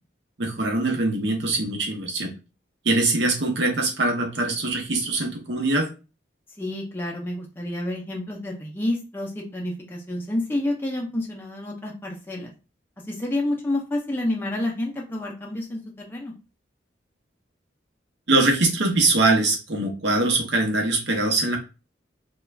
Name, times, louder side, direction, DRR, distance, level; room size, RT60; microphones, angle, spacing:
voice 1, 0.4-2.3 2.8-5.9 18.3-21.6, right 2 dB, 65° right, 2 dB, 0.7 m, -22 dB
voice 2, 6.6-12.5 13.1-16.3, left 1 dB, 10° left, -1 dB, 0.4 m, -29 dB
2.3 x 2.2 x 3.1 m, 0.31 s
head